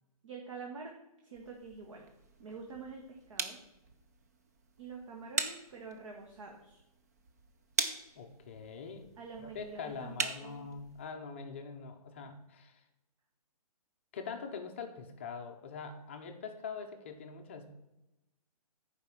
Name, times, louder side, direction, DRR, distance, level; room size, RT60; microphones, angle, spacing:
voice 1, 0.2-0.9 1.2-2.0 2.4-3.6 4.8-6.8 9.2-10.7, right 4 dB, 55° right, 1 dB, 1.4 m, -47 dB
sound 1, 1.3-11.1, right 4 dB, 25° right, 0.5 m, -41 dB
voice 2, 8.2-9.1 9.4-12.8 14.1-17.7, left 5 dB, 20° left, 5 dB, 0.6 m, -43 dB
10.5 x 4.9 x 5.9 m, 0.93 s
hypercardioid pair, 175°, 20 cm